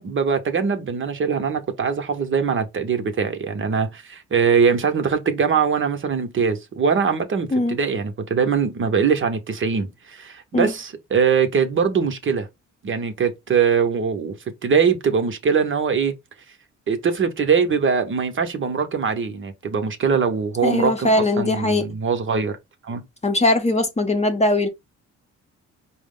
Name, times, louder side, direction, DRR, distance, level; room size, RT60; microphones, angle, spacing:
voice 1, 0.0-12.5 12.8-14.4 14.6-16.1 16.9-22.6 22.8-23.0, right 6 dB, 40° right, 0.8 m, -22 dB
voice 2, 20.6-21.9 23.2-24.7, left 2 dB, 20° left, 0.7 m, -20 dB
4.7 x 2.0 x 3.6 m
cardioid pair, 90°, 30 cm